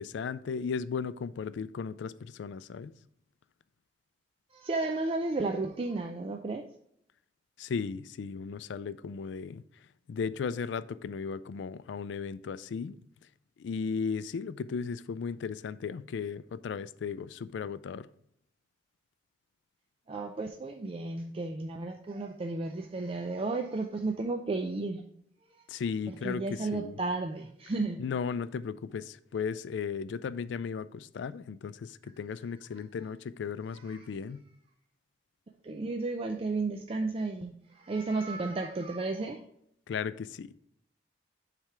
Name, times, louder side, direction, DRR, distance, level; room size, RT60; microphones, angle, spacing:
voice 1, 0.0-2.9 7.6-9.6 10.1-13.0 13.6-18.1 25.7-27.0 28.0-34.4 39.9-40.5, left 6 dB, 75° left, 0.3 m, -36 dB
voice 2, 4.5-6.6 20.1-25.0 25.5-25.7 26.1-28.0 33.8-34.1 35.6-39.4, right 3 dB, 30° right, 0.4 m, -33 dB
7.3 x 3.4 x 4.8 m
head